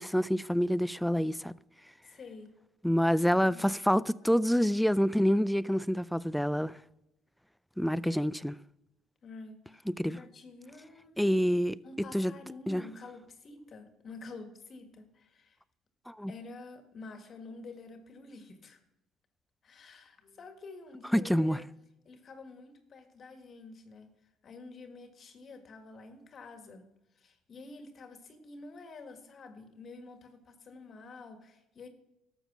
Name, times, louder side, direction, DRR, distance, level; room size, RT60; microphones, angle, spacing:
voice 1, 0.0-1.5 2.8-6.8 7.8-8.6 9.9-10.2 11.2-11.8 12.1-12.3 12.7-12.8 16.1-16.3 21.1-21.6, equal, ahead, 0.4 m, -27 dB
voice 2, 2.0-2.5 3.3-3.7 4.0-4.2 9.2-11.3 11.8-15.6 16.3-18.8 19.6-21.7 22.1-26.9 27.1-31.9, left 3 dB, 45° left, 1.7 m, -49 dB
12.5 x 7.2 x 6.0 m
supercardioid pair, 75°, 0 cm